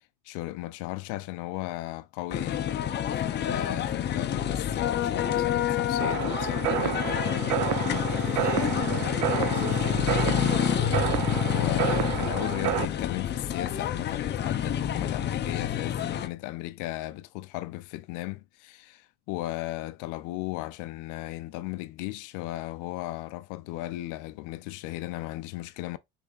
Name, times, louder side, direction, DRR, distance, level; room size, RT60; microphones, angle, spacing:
voice 1, 0.2-7.3 11.5-26.0, left 17 dB, 85° left, 0.5 m, -36 dB
sound 1, 2.3-16.3, left 10 dB, 35° left, 0.5 m, -28 dB
sound 2, 6.0-12.8, right 13 dB, 80° right, 0.5 m, -30 dB
voice 2, 8.2-10.2, right 1 dB, 30° right, 3.4 m, -37 dB
6.3 x 3.3 x 2.3 m
cardioid pair, 120°, 30 cm